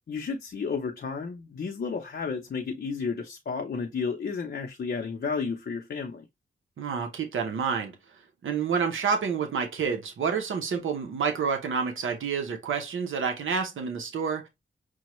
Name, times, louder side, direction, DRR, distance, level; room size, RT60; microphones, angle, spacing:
voice 1, 0.1-6.3, left 5 dB, 55° left, 0.6 m, -32 dB
voice 2, 6.8-14.5, right 6 dB, 85° right, 0.8 m, -29 dB
6.1 x 2.2 x 3.0 m
wide cardioid pair, 85°, 20 cm